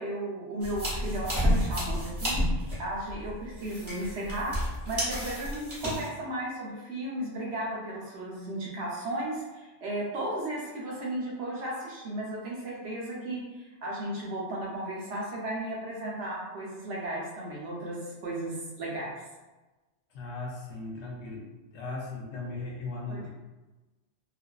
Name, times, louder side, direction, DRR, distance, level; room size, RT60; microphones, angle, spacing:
voice 1, 0.0-2.4 2.8-19.1 23.1-23.2, right 1 dB, 70° right, -3 dB, 0.9 m, -35 dB
sound 1, 0.6-6.1, equal, 25° right, 0.8 m, -30 dB
voice 2, 20.1-21.4 21.7-23.3, left 3 dB, 70° left, -2 dB, 0.8 m, -37 dB
2.4 x 2.4 x 2.2 m, 1.1 s
omnidirectional pair, 1.3 m